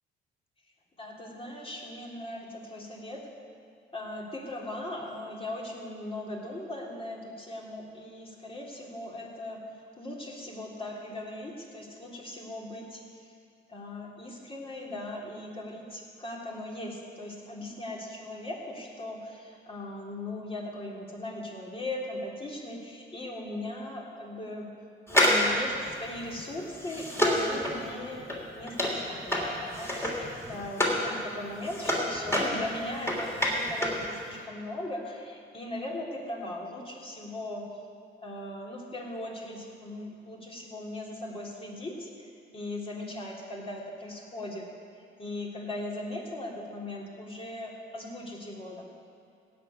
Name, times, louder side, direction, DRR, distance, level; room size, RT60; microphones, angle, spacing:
voice 1, 1.0-3.3 3.9-9.6 10.0-13.0 13.7-24.7 25.1-25.7 26.0-37.7 38.2-44.6 45.2-48.8, left 1 dB, 30° left, -2 dB, 3.1 m, -39 dB
sound 1, 25.1-31.0 31.4-34.1 34.3-34.4, equal, 10° left, 3.2 m, -28 dB
16.0 x 5.6 x 9.5 m, 2.6 s
cardioid pair, 90°, 20 cm